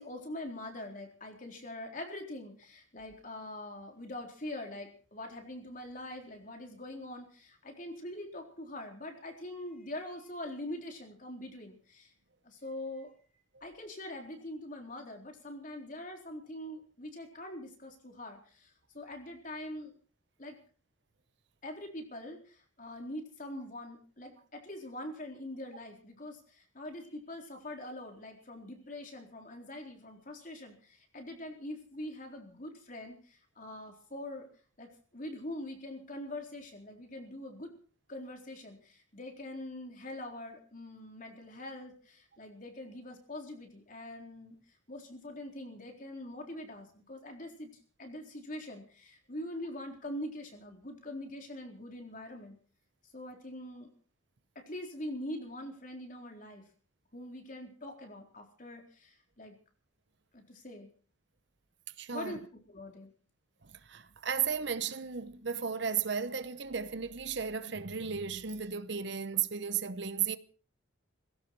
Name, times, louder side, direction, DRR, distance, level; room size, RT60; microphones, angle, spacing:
voice 1, 0.0-12.1 12.4-19.9 20.4-20.6 21.6-34.5 34.8-37.7 38.1-44.6 44.9-47.7 48.0-52.6 53.1-53.9 54.6-56.6 57.1-59.5 60.3-60.9 62.1-63.1, left 1 dB, 40° left, 4.0 m, -43 dB
voice 2, 62.0-62.4 63.9-70.4, right 7 dB, 60° right, 0.8 m, -34 dB
19.0 x 16.5 x 4.7 m
head